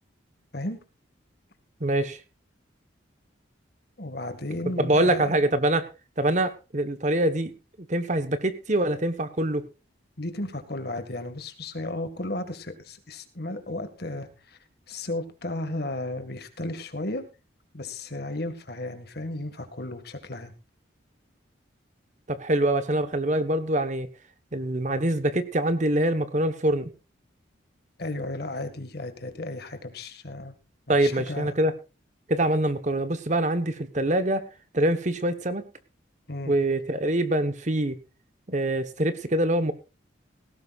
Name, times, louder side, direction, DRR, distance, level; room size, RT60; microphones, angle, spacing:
voice 1, 1.8-2.2 4.8-5.9 6.2-7.5 7.9-9.7 22.3-24.1 24.5-26.9 30.9-31.7 32.3-34.4 34.7-35.6 36.5-38.0 38.5-39.7, right 1 dB, 40° right, 11 dB, 1.2 m, -24 dB
voice 2, 4.0-5.4 10.2-14.6 14.9-17.2 17.7-20.5 28.0-30.6 31.0-31.5 36.3-36.5, left 2 dB, 55° left, 8 dB, 1.9 m, -34 dB
18.0 x 16.0 x 2.5 m, 0.30 s
head